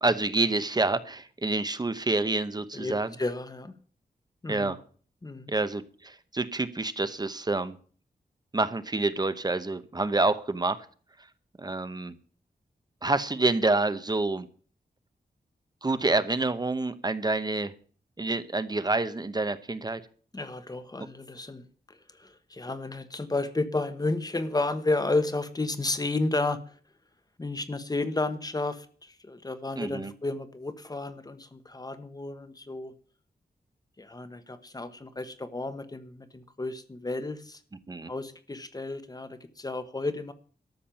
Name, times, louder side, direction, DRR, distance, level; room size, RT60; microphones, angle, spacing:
voice 1, 0.0-3.1 4.5-4.8 5.5-7.8 8.5-10.9 11.6-12.1 13.0-14.5 15.8-17.7 18.2-20.0 29.8-30.1 37.9-38.1, right 2 dB, 25° right, 12 dB, 0.9 m, -27 dB
voice 2, 2.7-3.7 4.4-4.7 5.2-5.5 20.3-21.6 22.2-26.6 27.4-32.9 34.0-37.6 38.1-40.3, left 2 dB, 25° left, 11 dB, 1.1 m, -32 dB
13.0 x 7.5 x 8.9 m, 0.43 s
wide cardioid pair, 155°, 16 cm